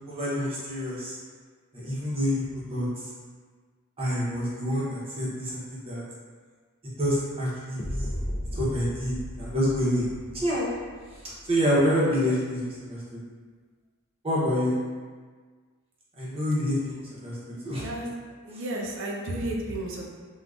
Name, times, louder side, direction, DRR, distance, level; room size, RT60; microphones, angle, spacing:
voice 1, 0.1-1.2 1.7-2.9 4.0-6.0 7.0-8.2 8.5-10.1 10.3-10.7 11.4-13.0 14.2-14.8 16.2-17.4 17.6-17.9, equal, 25° right, -7 dB, 0.7 m, -27 dB
sound 1, 7.8-11.8, equal, 30° left, 0.3 m, -36 dB
voice 2, 17.8-18.1 18.4-20.0, right 1 dB, 60° right, -2 dB, 0.5 m, -32 dB
3.5 x 2.2 x 2.4 m, 1.5 s
head